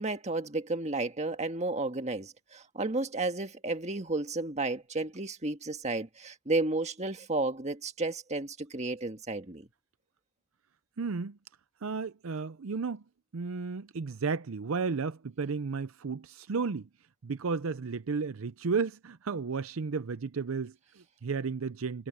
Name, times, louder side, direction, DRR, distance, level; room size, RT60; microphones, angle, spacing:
voice 1, 0.0-9.7, right 2 dB, 30° right, 1.7 m, -32 dB
voice 2, 11.0-11.4 11.8-13.0 13.3-16.9 17.2-22.1, right 5 dB, 70° right, 0.6 m, -33 dB
head